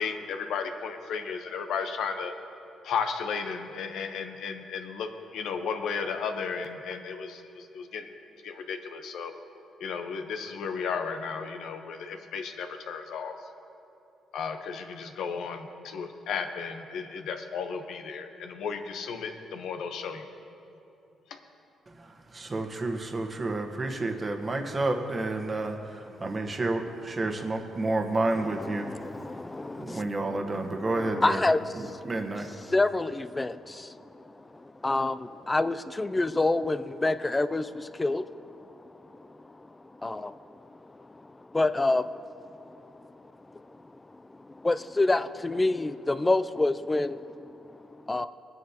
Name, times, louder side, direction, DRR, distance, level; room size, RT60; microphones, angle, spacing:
voice 1, 0.0-2.3 2.8-5.1 5.3-8.1 8.4-9.3 9.8-13.3 14.3-20.2, left 6 dB, 75° left, 6 dB, 0.9 m, -34 dB
voice 2, 22.0-29.0 29.8-31.4 31.7-32.5, right 2 dB, 30° right, 4 dB, 1.2 m, -30 dB
voice 3, 28.4-32.1 32.4-39.7 40.0-43.2 43.5-48.3, left 2 dB, 20° left, 13 dB, 0.3 m, -29 dB
20.0 x 9.6 x 2.9 m, 2.8 s
cardioid pair, 90°, 0 cm